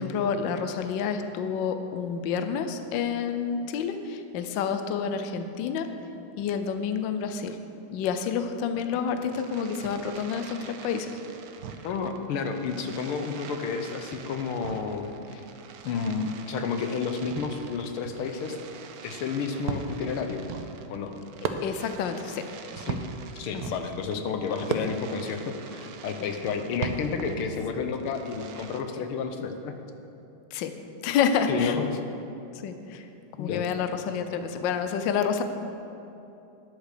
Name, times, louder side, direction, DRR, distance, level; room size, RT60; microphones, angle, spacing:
voice 1, 0.0-5.9 6.4-7.6 7.9-10.6 10.8-11.1 21.6-22.4 30.5-30.7 31.0-31.7 32.6-33.0 33.4-35.4, left 7 dB, 70° left, 8 dB, 1.3 m, -28 dB
Fireworks, 9.0-28.8, right 6 dB, 75° right, 0.8 m, -40 dB
voice 2, 11.8-15.4 15.9-18.6 19.0-20.4 20.9-21.1 22.8-23.0 23.4-25.4 25.7-29.8 31.5-31.9 33.4-33.7, left 5 dB, 90° left, 6 dB, 1.7 m, -31 dB
10.5 x 8.3 x 6.5 m, 2.8 s
omnidirectional pair, 2.3 m